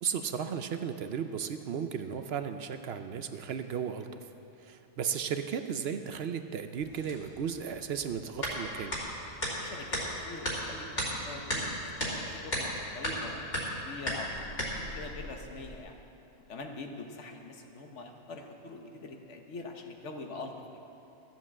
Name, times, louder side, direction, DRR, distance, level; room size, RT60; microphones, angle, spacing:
voice 1, 0.0-4.1 4.6-8.9, right 7 dB, 65° right, 8 dB, 0.8 m, -35 dB
sound 1, 6.8-15.8, equal, 55° left, 2.8 m, -36 dB
voice 2, 9.6-11.8 12.2-13.5 13.8-14.4 14.8-16.0 16.5-20.8, left 3 dB, 75° left, 4 dB, 1.4 m, -44 dB
13.0 x 7.5 x 7.4 m, 2.9 s
omnidirectional pair, 1.2 m